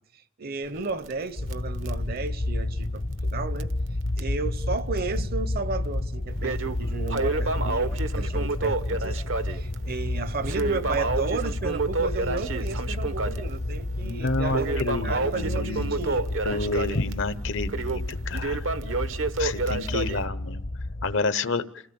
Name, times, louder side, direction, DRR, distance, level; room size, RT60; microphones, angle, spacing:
voice 1, 0.4-3.7 4.2-9.2 9.5-16.3, right 3 dB, 50° right, 0.8 m, -33 dB
Crackle, 0.7-3.4 3.6-3.7 4.2-4.3 5.0-5.6 6.0-20.2, right 3 dB, 75° right, 1.1 m, -30 dB
sound 1, 1.4-21.2, left 1 dB, 45° left, 0.8 m, -31 dB
voice 2, 14.0-16.0 16.4-18.6 19.4-20.6 21.0-21.6, left 3 dB, 70° left, 1.0 m, -29 dB
28.0 x 17.0 x 7.1 m
head